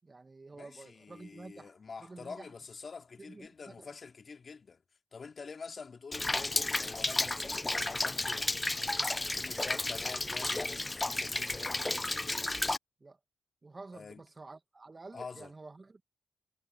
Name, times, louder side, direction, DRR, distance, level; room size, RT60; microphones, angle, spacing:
voice 1, 0.0-1.7 2.0-2.5 3.2-3.9 13.0-13.2 13.6-16.0, right 3 dB, 30° right, 1.9 m, -50 dB
voice 2, 0.6-4.8 5.1-8.7 9.3-12.0 13.9-14.2 15.1-15.5, left 5 dB, 45° left, 3.2 m, -47 dB
Rain, 6.1-12.8, left 2 dB, 20° left, 0.5 m, -32 dB
cardioid pair, 65°, 0 cm